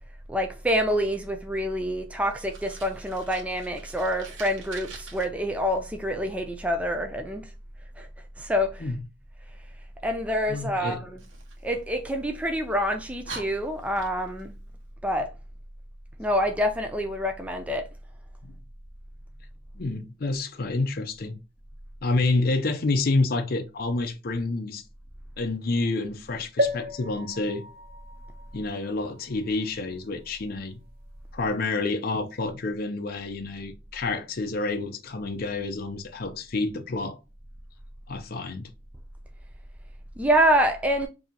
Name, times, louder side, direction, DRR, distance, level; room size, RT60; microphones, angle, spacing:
voice 1, 0.3-7.4 8.0-8.1 8.4-8.8 10.0-11.2 11.6-14.5 15.0-15.3 16.2-17.8 40.2-41.1, equal, 5° right, 0.4 m, -26 dB
Fire, 2.3-5.2 11.2-12.4 12.9-13.0 13.2-14.5, right 4 dB, 90° right, 1.2 m, -44 dB
voice 2, 10.5-11.0 18.4-18.5 19.8-21.4 22.0-24.8 25.4-27.6 28.5-30.8 31.3-37.2 38.1-38.7, left 3 dB, 50° left, 0.5 m, -28 dB
sound 1, 26.6-30.2 30.8-30.9 31.1-31.2, left 1 dB, 55° right, 0.8 m, -33 dB
4.7 x 2.7 x 2.8 m
head